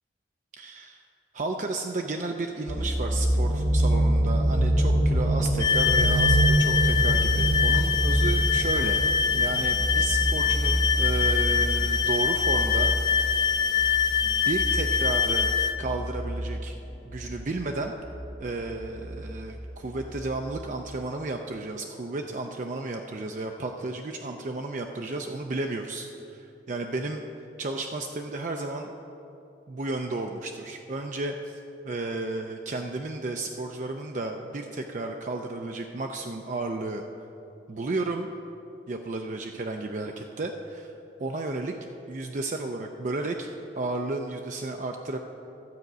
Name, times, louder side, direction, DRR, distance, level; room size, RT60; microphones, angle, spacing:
voice 1, 0.6-1.0 1.3-9.0 9.3-12.9 13.2-13.8 14.2-15.5 15.8-16.8 17.1-17.9 18.4-27.2 27.6-28.9 29.7-37.0 37.7-38.3 38.9-40.9 41.2-41.7 42.1-43.5 43.7-45.2, right 2 dB, 45° right, 3 dB, 0.5 m, -33 dB
sound 1, 2.7-20.5 20.9-21.0, right 1 dB, 85° left, 1.3 m, -26 dB
sound 2, 5.6-15.7, left 7 dB, 25° left, 0.3 m, -24 dB
12.5 x 5.1 x 7.9 m, 2.8 s
head